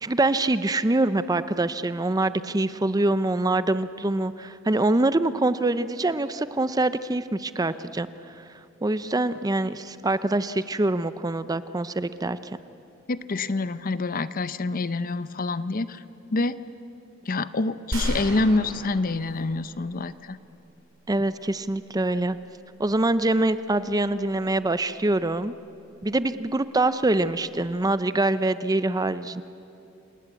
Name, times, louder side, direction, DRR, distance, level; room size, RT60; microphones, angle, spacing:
voice 1, 0.0-8.1 8.4-8.5 8.8-12.4 21.1-22.4 22.8-25.5 26.0-29.4, right 2 dB, 20° right, 13 dB, 0.6 m, -24 dB
voice 2, 13.1-16.0 16.3-16.6 17.3-20.4, left 3 dB, 45° left, 14 dB, 0.7 m, -26 dB
sound 1, 17.9-20.2, right 1 dB, 90° right, 5.3 m, -33 dB
28.0 x 19.0 x 8.2 m, 2.6 s
head